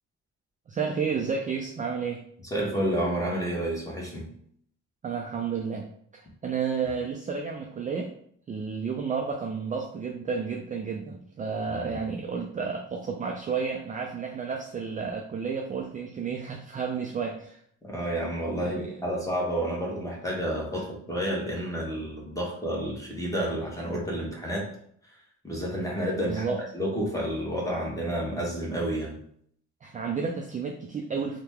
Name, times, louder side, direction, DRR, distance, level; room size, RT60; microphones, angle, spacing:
voice 1, 0.7-2.2 5.0-5.9 6.1-8.1 8.5-17.6 18.5-18.9 26.3-26.6 29.8-31.4, right 5 dB, 25° right, 1 dB, 0.3 m, -31 dB
voice 2, 2.4-4.3 11.7-12.0 17.8-24.7 25.4-29.1, right 1 dB, 10° left, -3 dB, 1.1 m, -30 dB
2.8 x 2.2 x 3.5 m, 0.65 s
cardioid pair, 90°, 30 cm